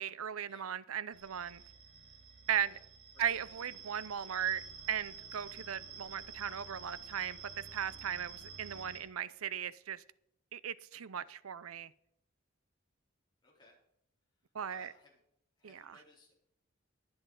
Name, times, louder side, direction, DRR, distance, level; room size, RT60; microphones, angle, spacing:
voice 1, 0.0-1.6 2.5-2.8 3.2-10.0 10.5-11.9 14.5-14.9 15.6-16.0, right 9 dB, 90° right, 0.6 m, -37 dB
sound 1, 1.1-9.0, right 5 dB, 70° right, 4.0 m, -50 dB
voice 2, 13.4-13.8 14.7-15.2 15.6-16.3, left 2 dB, 20° left, 3.8 m, -61 dB
22.0 x 7.8 x 4.0 m
head